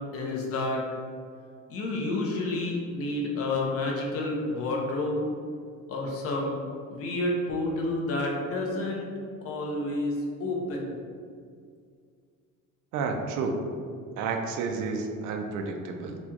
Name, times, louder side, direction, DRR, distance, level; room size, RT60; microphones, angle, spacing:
voice 1, 0.1-0.8 1.7-5.3 5.9-6.6 6.9-9.1 9.4-10.9, left 2 dB, 50° left, -1 dB, 0.7 m, -29 dB
voice 2, 12.9-13.6 14.2-16.2, right 4 dB, 80° right, 3 dB, 0.5 m, -30 dB
4.1 x 2.3 x 2.8 m, 2.2 s
cardioid pair, 165°, 30 cm